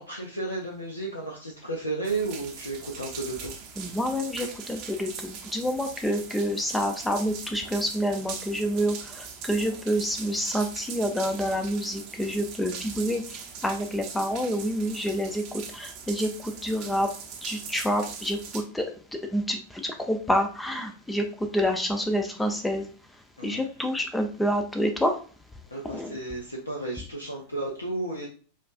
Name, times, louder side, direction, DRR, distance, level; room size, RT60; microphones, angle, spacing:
voice 1, 0.0-3.5 23.4-23.7 25.7-28.3, right 2 dB, 80° left, -1 dB, 0.6 m, -33 dB
sound 1, 2.0-18.6, right 6 dB, 40° right, 0.7 m, -41 dB
voice 2, 3.8-13.2 13.6-17.1 17.4-18.9 19.1-21.3 21.5-22.9 23.4-25.1 25.9-26.1, equal, 5° left, 4 dB, 0.4 m, -28 dB
5.1 x 2.4 x 2.4 m, 0.40 s
figure-of-eight pair, 90°, 0 cm